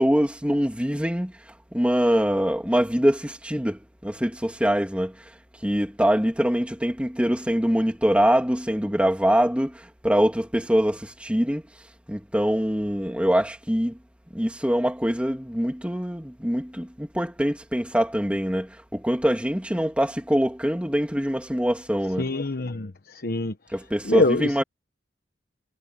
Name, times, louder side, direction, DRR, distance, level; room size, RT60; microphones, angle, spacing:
voice 1, 0.0-1.3 1.7-5.1 5.6-11.6 12.1-14.0 14.3-22.3 23.7-24.6, equal, 5° right, 2.9 m, -24 dB
voice 2, 22.2-23.5 24.0-24.6, left 2 dB, 55° left, 1.1 m, -25 dB
head